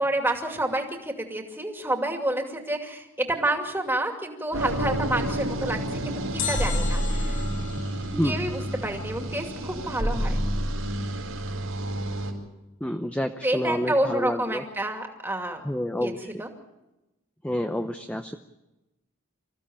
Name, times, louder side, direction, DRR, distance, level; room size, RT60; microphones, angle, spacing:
voice 1, 0.0-7.4 8.2-10.4 13.4-15.6 16.0-16.5, right 1 dB, 10° right, 3 dB, 2.4 m, -29 dB
sound 1, 4.5-12.3, right 1 dB, 80° right, 4.5 m, -29 dB
sound 2, 6.4-9.5 9.7-9.8, left 7 dB, 60° left, 3.0 m, -37 dB
voice 2, 8.1-8.5 12.8-14.6 15.6-16.4 17.4-18.4, left 1 dB, 5° left, 6 dB, 0.7 m, -29 dB
26.5 x 15.0 x 8.7 m, 0.99 s
head